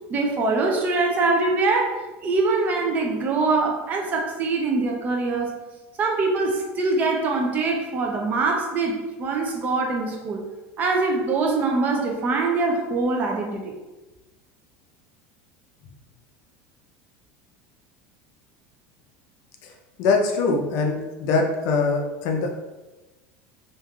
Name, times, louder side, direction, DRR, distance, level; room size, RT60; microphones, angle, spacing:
voice 1, 0.1-5.6 6.0-10.4 10.8-13.7, right 3 dB, 30° right, 1 dB, 0.4 m, -23 dB
voice 2, 20.0-22.5, left 4 dB, 55° left, 2 dB, 0.4 m, -23 dB
3.0 x 2.4 x 2.3 m, 1.1 s
cardioid pair, 160°, 6 cm